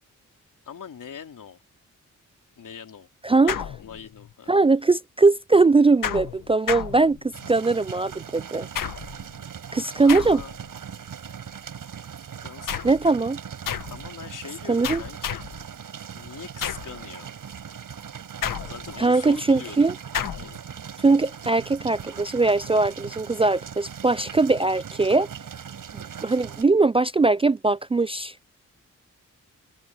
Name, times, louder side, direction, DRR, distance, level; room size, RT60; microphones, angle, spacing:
voice 1, 0.6-1.6 2.6-3.5 3.8-4.5 10.0-10.6 12.4-12.9 13.9-15.4 16.1-17.3 18.6-19.9 20.4-20.5, left 7 dB, 75° left, 3.4 m, -42 dB
voice 2, 3.2-3.6 4.5-8.7 9.7-10.4 12.8-13.4 14.7-15.0 19.0-19.9 21.0-25.3 25.9-28.4, right 3 dB, 20° right, 0.3 m, -21 dB
sound 1, 3.5-4.3 6.0-7.5 8.7-9.3 10.1-10.7 12.7-13.1 13.7-14.1 14.8-15.6 16.6-17.0 18.4-19.1 20.1-20.6, left 9 dB, 90° left, 1.8 m, -31 dB
sound 2, 7.3-26.6, right 7 dB, 80° right, 6.3 m, -40 dB
cardioid pair, 55°, 32 cm